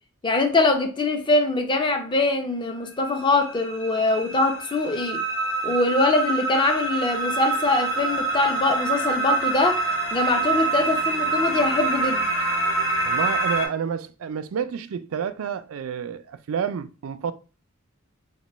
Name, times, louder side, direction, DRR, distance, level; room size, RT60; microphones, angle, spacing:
voice 1, 0.2-5.2 5.6-9.8 10.1-12.2, left 2 dB, 25° left, 0.5 m, -23 dB
sound 1, 3.1-13.7, right 3 dB, 75° left, 1.0 m, -26 dB
voice 2, 13.0-17.3, right 7 dB, 75° right, 0.4 m, -29 dB
2.9 x 2.2 x 4.0 m
head